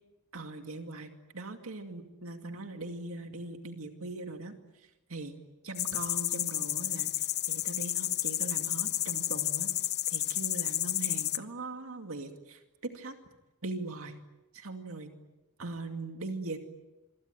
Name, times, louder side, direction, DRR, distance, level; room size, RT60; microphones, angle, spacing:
voice 1, 0.3-5.4 5.6-9.7 10.1-13.2 13.6-14.2 14.5-15.1 15.6-16.6, right 2 dB, 70° right, 5 dB, 2.4 m, -40 dB
sound 1, 5.8-11.4, left 13 dB, 50° left, 0.9 m, -31 dB
27.0 x 23.0 x 9.3 m, 1.1 s
head